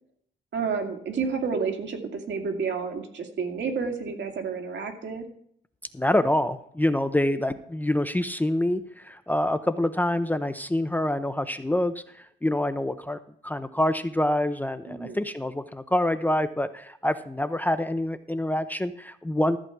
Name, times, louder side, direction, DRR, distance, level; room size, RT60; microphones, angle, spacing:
voice 1, 0.5-5.2 14.9-15.2, right 5 dB, 65° right, 4 dB, 2.4 m, -30 dB
voice 2, 5.9-11.9 12.4-19.6, left 1 dB, 10° left, 10 dB, 0.6 m, -26 dB
14.0 x 7.5 x 4.7 m, 0.66 s
cardioid pair, 90°, 20 cm